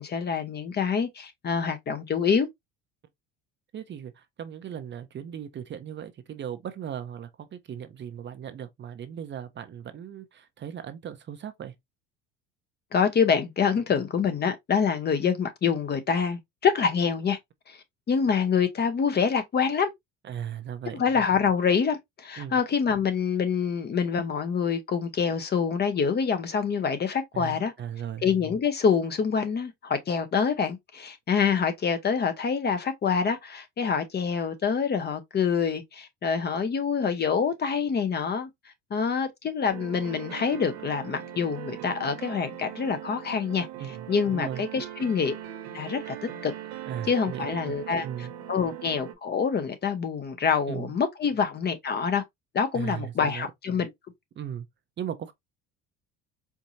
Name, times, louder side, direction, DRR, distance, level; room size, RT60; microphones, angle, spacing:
voice 1, 0.0-2.5 12.9-17.4 17.7-17.8 18.1-19.9 20.9-27.7 28.2-38.5 38.9-45.4 45.7-46.2 46.4-46.5 47.0-52.2 52.5-53.9, left 6 dB, 30° left, 0.8 m, -26 dB
voice 2, 3.7-11.7 20.2-21.0 22.4-22.6 27.3-28.2 43.8-44.6 46.9-47.7 48.0-48.3 50.7-50.9 52.7-53.5 54.4-54.7 55.0-55.3, right 9 dB, 35° right, 0.7 m, -37 dB
sound 1, 39.7-49.1, right 11 dB, 85° right, 1.2 m, -40 dB
4.6 x 2.7 x 2.6 m
supercardioid pair, 95°, 31 cm